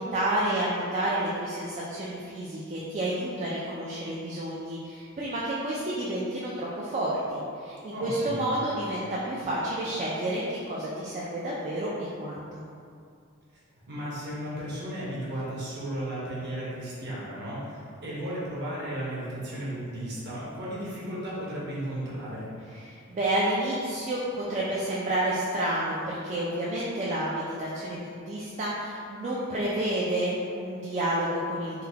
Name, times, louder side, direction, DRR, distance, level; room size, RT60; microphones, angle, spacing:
voice 1, 0.0-11.9 12.2-12.6 22.7-31.8, right 1 dB, 35° right, -6 dB, 0.3 m, -30 dB
voice 2, 7.9-8.5 13.9-22.5, right 1 dB, 50° right, -7 dB, 0.9 m, -34 dB
3.8 x 2.2 x 2.7 m, 2.4 s
head